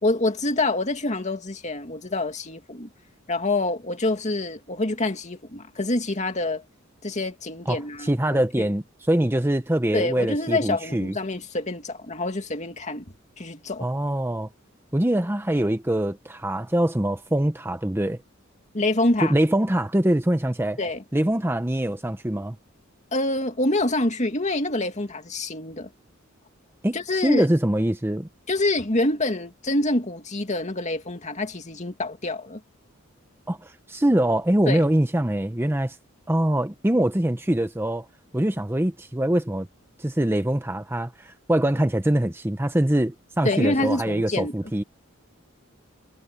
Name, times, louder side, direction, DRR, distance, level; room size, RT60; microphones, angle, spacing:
voice 1, 0.0-2.9 3.3-6.6 7.0-8.7 9.9-13.0 13.4-13.9 18.7-19.4 20.8-21.0 23.1-25.9 26.9-27.5 28.5-32.6 34.7-34.8 43.4-44.5, left 2 dB, 35° left, 2.3 m, -26 dB
voice 2, 7.7-11.1 13.8-14.5 14.9-18.2 19.2-20.8 21.1-22.6 26.8-27.0 27.2-28.3 33.5-36.0 36.3-38.1 38.3-39.7 40.0-44.8, right 1 dB, 10° right, 0.8 m, -23 dB
head